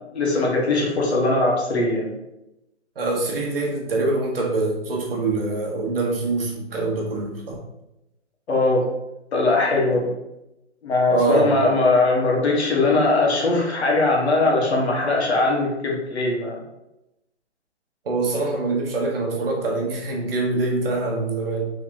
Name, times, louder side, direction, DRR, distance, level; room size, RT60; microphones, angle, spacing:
voice 1, 0.1-2.1 8.5-8.9 9.3-10.1 10.8-16.6, left 2 dB, 65° left, -2 dB, 1.6 m, -20 dB
voice 2, 2.9-7.6 9.9-10.0 11.1-11.6 18.0-21.7, right 2 dB, 55° right, -1 dB, 1.3 m, -24 dB
4.6 x 3.6 x 2.9 m, 0.90 s
hypercardioid pair, 165°, 36 cm